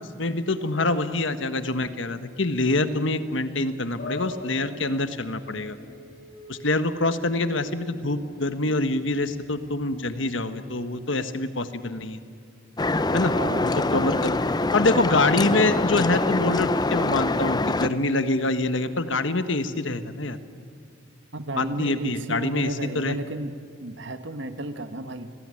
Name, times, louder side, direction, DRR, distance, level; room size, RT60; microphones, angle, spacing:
voice 1, 0.2-5.8 6.5-12.2 13.1-13.3 13.6-14.3 14.7-20.4 21.6-23.2, left 2 dB, 65° left, 10 dB, 1.5 m, -25 dB
sound 1, 4.0-10.4, left 1 dB, 50° left, 5.7 m, -44 dB
sound 2, 12.8-17.9, left 2 dB, 20° left, 0.7 m, -24 dB
voice 2, 13.4-13.7 21.3-25.3, right 2 dB, 60° right, 10 dB, 1.6 m, -33 dB
29.5 x 20.0 x 9.9 m, 2.2 s
head